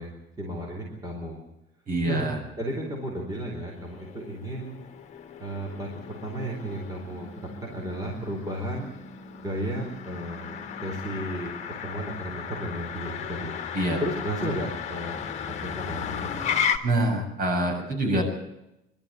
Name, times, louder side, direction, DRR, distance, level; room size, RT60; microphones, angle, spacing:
voice 1, 0.0-1.4 2.0-2.3 2.6-4.8 5.4-7.3 7.6-8.9 9.4-11.5 11.8-13.5 14.0-15.2 15.5-16.4, right 1 dB, 15° right, 0 dB, 4.3 m, -34 dB
voice 2, 1.9-2.4 13.7-14.0 16.8-18.2, right 1 dB, 40° right, 2 dB, 7.0 m, -25 dB
Motor vehicle (road), 3.7-16.8, left 7 dB, 30° left, 1.9 m, -35 dB
24.5 x 13.0 x 9.4 m, 0.89 s
cardioid pair, 155°, 21 cm